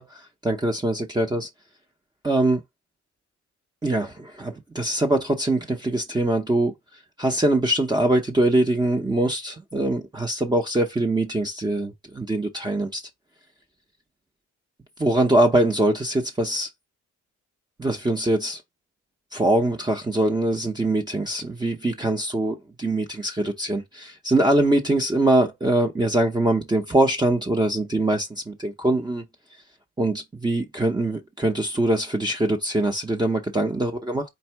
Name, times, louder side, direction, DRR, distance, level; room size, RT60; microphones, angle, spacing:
voice 1, 0.0-1.5 2.2-2.6 3.8-6.7 7.2-13.0 15.0-16.7 17.8-18.6 19.3-29.2 30.0-34.2, right 1 dB, 15° right, 0.7 m, -23 dB
4.4 x 2.7 x 4.4 m
cardioid pair, 90°, 30 cm